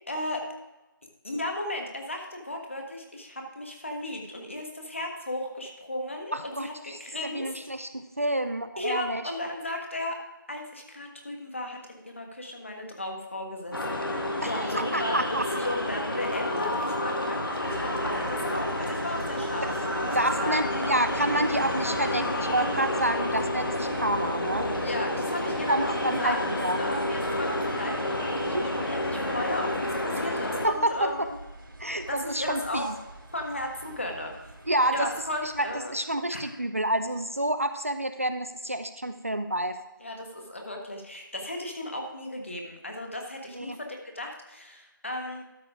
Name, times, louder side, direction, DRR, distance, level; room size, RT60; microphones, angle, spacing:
voice 1, 0.1-0.4 1.2-7.6 8.8-10.2 10.5-14.0 14.4-20.7 24.8-31.4 32.1-32.9 33.3-34.3 34.9-35.9 36.3-36.5 40.0-45.4, left 1 dB, 35° left, 2 dB, 1.4 m, -35 dB
voice 2, 6.3-7.0 7.3-9.2 14.4-15.4 19.6-19.7 20.1-24.7 25.7-26.8 28.4-28.6 30.1-30.2 30.6-31.3 31.8-32.9 34.7-35.1 35.4-39.8 43.5-43.8, right 1 dB, 40° right, 9 dB, 0.4 m, -28 dB
sound 1, 13.7-30.7, left 1 dB, 75° left, 1.9 m, -30 dB
sound 2, 17.7-35.8, right 1 dB, 85° right, 3.0 m, -43 dB
13.0 x 4.8 x 4.9 m, 1.1 s
figure-of-eight pair, 180°, 11 cm